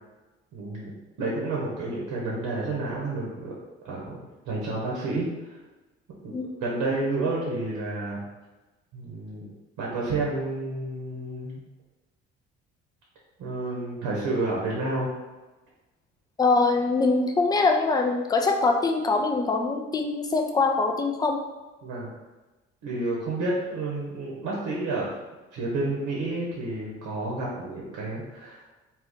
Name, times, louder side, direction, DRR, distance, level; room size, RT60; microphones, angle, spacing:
voice 1, 0.5-3.5 3.8-4.2 4.4-5.6 6.2-6.3 6.6-8.2 8.9-9.5 9.8-11.6 13.4-15.1 21.8-22.1 22.8-25.1 25.5-28.7, right 2 dB, 60° right, -4 dB, 0.9 m, -30 dB
voice 2, 16.4-21.4, left 3 dB, 10° left, 4 dB, 0.3 m, -23 dB
2.5 x 2.4 x 3.6 m, 1.1 s
hypercardioid pair, 55°, 33 cm